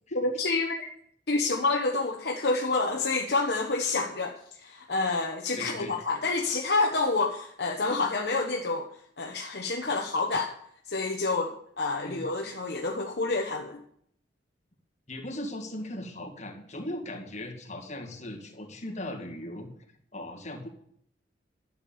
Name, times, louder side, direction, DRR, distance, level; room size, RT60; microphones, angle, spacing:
voice 1, 0.1-0.9 1.3-8.9 9.2-10.5 10.9-13.8, left 3 dB, 60° left, 2 dB, 1.0 m, -28 dB
voice 2, 5.6-5.9 12.0-12.2 15.1-19.7 20.1-20.7, left 1 dB, 40° left, 1 dB, 2.0 m, -38 dB
12.0 x 7.2 x 7.0 m, 0.67 s
head